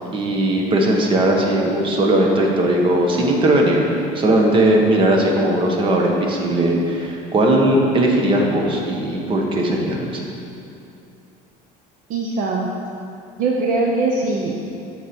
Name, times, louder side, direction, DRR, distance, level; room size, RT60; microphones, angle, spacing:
voice 1, 0.1-3.9 4.1-10.1, right 1 dB, 30° right, 0 dB, 1.2 m, -18 dB
voice 2, 12.1-12.7 13.4-14.7, right 3 dB, 55° right, -1 dB, 0.8 m, -21 dB
8.9 x 6.6 x 4.4 m, 2.6 s
cardioid pair, 145°, 17 cm